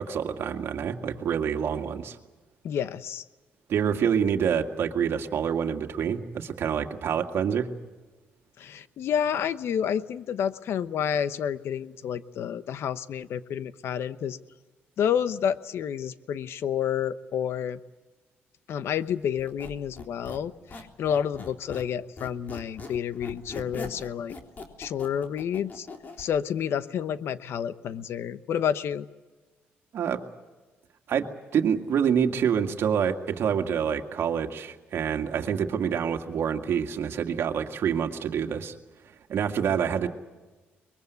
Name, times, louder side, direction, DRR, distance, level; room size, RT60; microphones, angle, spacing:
voice 1, 0.0-2.2 3.7-7.7 29.9-30.2 31.1-31.3 31.5-38.7 39.3-40.1, right 8 dB, 65° right, 4 dB, 2.0 m, -27 dB
voice 2, 2.6-3.2 8.6-14.4 15.0-17.8 18.7-24.3 24.8-25.9 26.2-29.1, left 8 dB, 70° left, 14 dB, 1.0 m, -29 dB
Squeak, 19.4-21.9 22.2-26.3, left 3 dB, 45° left, 3.7 m, -41 dB
24.0 x 21.5 x 8.2 m, 1.2 s
cardioid pair, 85°, 4 cm